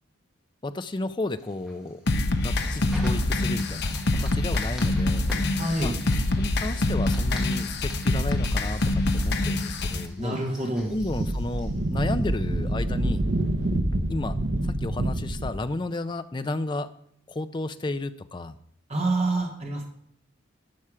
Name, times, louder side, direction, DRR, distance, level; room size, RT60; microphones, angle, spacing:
voice 1, 0.6-2.0 2.4-5.3 5.8-5.9 6.4-8.8 9.1-10.6 10.9-13.3 14.1-14.4 14.6-16.9 17.3-18.6, left 2 dB, 25° left, 11 dB, 0.4 m, -32 dB
Fire, 1.2-12.6, equal, 5° right, 1.9 m, -47 dB
sound 1, 2.1-10.1, left 2 dB, 55° left, 0.8 m, -25 dB
voice 2, 5.6-5.9 10.2-10.9 18.9-19.9, right 2 dB, 30° right, 1 dB, 1.3 m, -27 dB
Wind, 10.9-15.6, right 1 dB, 60° right, 0.9 m, -27 dB
12.0 x 5.7 x 4.9 m, 0.66 s
head